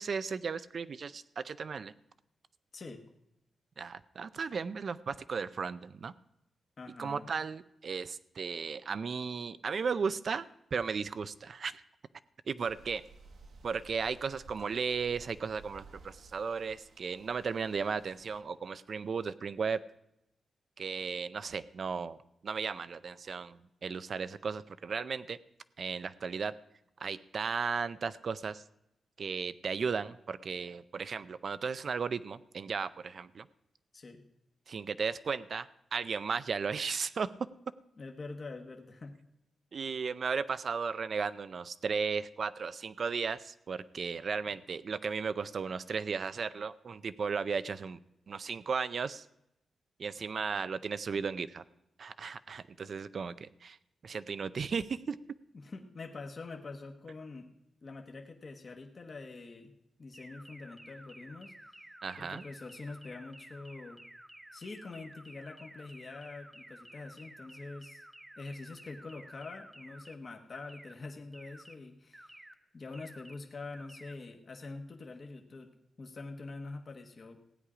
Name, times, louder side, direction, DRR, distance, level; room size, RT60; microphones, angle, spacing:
voice 1, 0.0-1.9 3.8-6.1 7.0-10.5 10.7-11.8 12.5-13.0 13.6-19.8 20.8-25.4 25.8-26.5 27.0-28.6 29.2-33.5 34.7-37.3 39.7-48.0 48.3-49.3 50.0-51.6 52.0-53.8 54.0-55.2 62.0-62.4, right 5 dB, 45° right, 15 dB, 0.5 m, -35 dB
voice 2, 6.8-7.3 33.9-34.2 38.0-39.1 55.5-57.5 57.8-59.7 60.0-61.5 62.2-64.0 64.5-68.0 68.4-72.4 72.7-75.7 76.0-77.4, left 3 dB, 35° left, 3 dB, 1.1 m, -45 dB
sound 1, 12.7-18.4, right 3 dB, 70° right, 1.2 m, -56 dB
sound 2, 60.1-70.1 70.5-70.9 71.3-71.7 72.1-72.5 72.9-73.3 73.7-74.1, right 1 dB, 10° right, 0.8 m, -53 dB
16.0 x 9.9 x 4.9 m, 0.85 s
wide cardioid pair, 165°, 0 cm